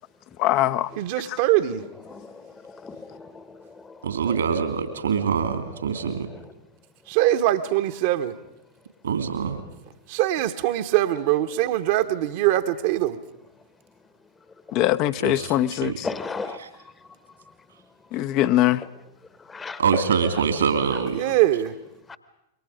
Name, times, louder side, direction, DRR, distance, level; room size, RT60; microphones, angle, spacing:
voice 1, 0.4-0.9 14.7-16.1 18.1-18.8, left 14 dB, 45° left, 0.9 m, -22 dB
voice 2, 1.0-1.8 7.1-8.3 10.1-13.2 21.1-21.7, right 14 dB, 50° right, 1.3 m, -22 dB
voice 3, 2.8-3.6 4.3-4.4 16.0-16.6 19.5-19.8 22.1-22.2, left 4 dB, 15° left, 1.2 m, -34 dB
voice 4, 4.0-6.3 9.0-9.6 15.2-15.5 15.8-16.0 16.6-16.7 19.8-21.2, right 6 dB, 70° right, 2.8 m, -24 dB
27.5 x 23.5 x 5.1 m
figure-of-eight pair, 95°, 0 cm